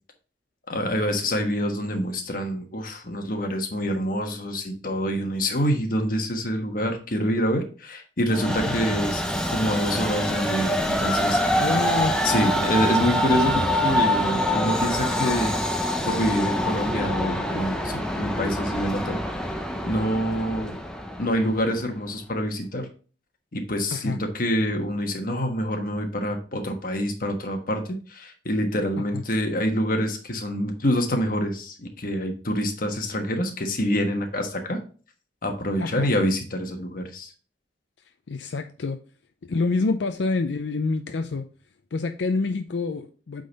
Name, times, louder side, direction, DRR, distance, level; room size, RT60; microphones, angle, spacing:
voice 1, 0.7-11.6 12.2-15.6 16.0-19.2 19.9-20.8 21.2-22.9 23.5-34.8 35.4-37.3, equal, 55° left, 4 dB, 1.3 m, -26 dB
Train, 8.3-21.8, equal, 5° left, 0.8 m, -25 dB
voice 2, 11.6-12.2 23.9-24.2 29.1-29.2 35.8-36.1 38.3-39.0 39.5-41.5 41.9-43.4, left 3 dB, 85° left, 7 dB, 0.5 m, -27 dB
8.5 x 3.9 x 4.0 m, 0.38 s
head